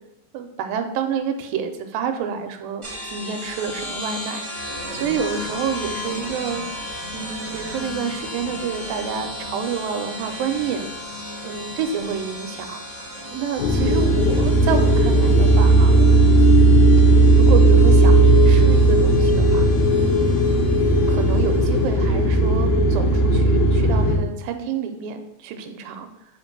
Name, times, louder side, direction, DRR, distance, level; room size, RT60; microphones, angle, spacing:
voice 1, 0.3-6.7 7.1-11.2 11.4-16.8 17.4-19.7 20.0-20.4 21.1-26.1, right 7 dB, 85° right, 6 dB, 2.3 m, -29 dB
sound 1, 2.8-22.0, left 1 dB, 50° right, 0.6 m, -35 dB
sound 2, 13.6-24.2, right 2 dB, 75° left, 1.8 m, -15 dB
7.2 x 2.6 x 5.2 m, 0.82 s
omnidirectional pair, 4.0 m